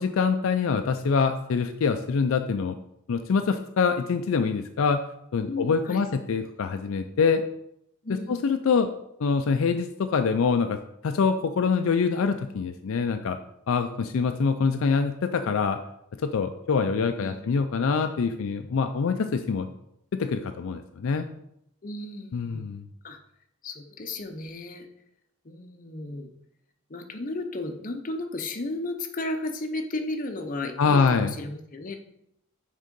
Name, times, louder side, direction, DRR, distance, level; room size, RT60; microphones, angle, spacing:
voice 1, 0.0-2.7 3.1-5.0 5.3-7.4 8.4-8.9 9.2-10.8 11.0-13.4 13.7-15.8 16.2-19.7 20.2-21.3 22.3-22.9 30.8-31.3, left 5 dB, 70° left, 7 dB, 0.4 m, -25 dB
voice 2, 5.4-6.1 8.0-8.3 17.2-17.4 21.8-22.6 23.0-23.2 23.6-24.9 25.4-26.3 26.9-32.0, left 2 dB, 40° left, 5 dB, 0.7 m, -34 dB
6.5 x 3.7 x 5.2 m, 0.77 s
head